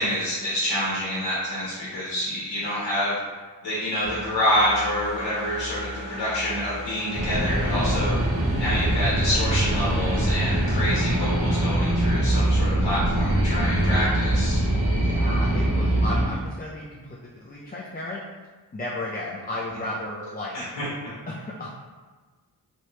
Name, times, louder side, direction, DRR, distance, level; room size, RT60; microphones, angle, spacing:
voice 1, 0.0-3.2 3.6-8.1 8.4-14.6 20.8-20.9, equal, 85° left, -7 dB, 1.0 m, -27 dB
sound 1, 4.0-12.7 13.1-13.2, equal, 85° right, 0.9 m, -39 dB
sound 2, 7.1-16.3, right 1 dB, 35° right, 1.3 m, -23 dB
voice 2, 14.7-18.2 18.7-20.7 21.3-21.7, left 1 dB, 20° left, -4 dB, 0.5 m, -34 dB
3.3 x 2.9 x 2.8 m, 1.3 s
cardioid pair, 45°, 42 cm